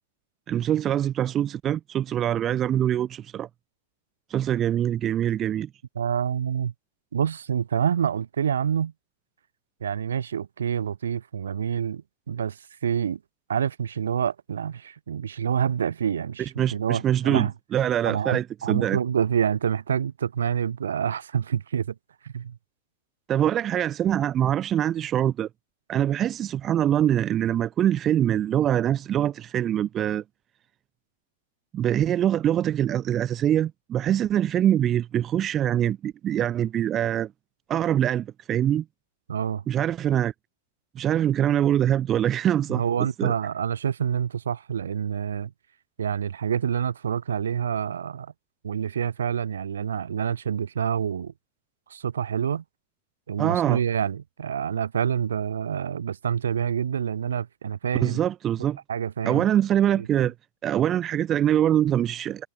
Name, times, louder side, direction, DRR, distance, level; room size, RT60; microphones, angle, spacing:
voice 1, 0.5-3.5 4.3-5.7 16.4-19.0 23.3-25.5 25.9-30.2 31.7-37.3 37.7-38.8 39.7-40.3 41.0-42.8 43.2-43.3 53.4-53.8 58.0-58.8 59.2-60.3 60.6-62.5, right 11 dB, 30° right, 0.4 m, -24 dB
voice 2, 6.0-6.7 7.1-8.9 9.8-12.6 12.8-13.2 13.5-17.5 18.0-21.9 22.2-22.6 39.3-39.6 42.7-45.5 46.0-48.3 48.6-51.3 51.9-52.6 53.3-58.2 58.9-59.4 59.9-60.3, right 8 dB, 65° right, 1.1 m, -27 dB
figure-of-eight pair, 90°, 0 cm